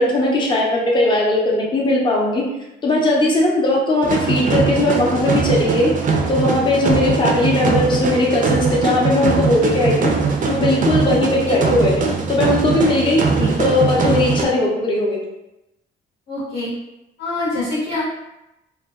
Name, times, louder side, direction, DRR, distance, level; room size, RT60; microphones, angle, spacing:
voice 1, 0.0-2.4 2.8-5.9 6.3-10.1 10.5-11.9 12.3-13.2 13.6-15.2, left 2 dB, 25° left, -3 dB, 0.6 m, -18 dB
sound 1, 4.0-14.4, right 5 dB, 40° right, 0.4 m, -21 dB
voice 2, 16.3-16.7 17.2-18.0, left 2 dB, 75° left, -8 dB, 0.9 m, -24 dB
2.5 x 2.2 x 2.2 m, 0.92 s
cardioid pair, 90°, 20 cm